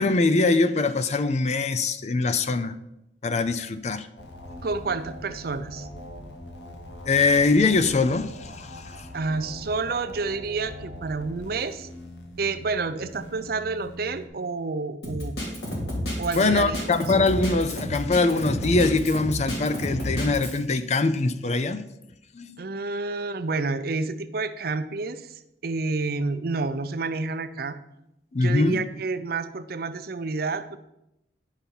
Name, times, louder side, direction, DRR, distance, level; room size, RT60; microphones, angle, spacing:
voice 1, 0.0-2.7 3.2-4.1 7.1-9.1 16.3-21.8 22.3-22.6 28.3-28.8, left 3 dB, 40° left, 12 dB, 0.5 m, -23 dB
sound 1, 4.2-14.3, left 1 dB, 75° left, 1.1 m, -42 dB
voice 2, 4.6-5.9 9.1-11.9 12.4-15.3 16.2-16.8 22.6-27.8 28.4-30.8, right 3 dB, 55° right, 11 dB, 0.5 m, -29 dB
Drum kit, 15.0-20.6, left 1 dB, 60° left, 2.8 m, -30 dB
9.9 x 5.7 x 5.4 m, 0.87 s
head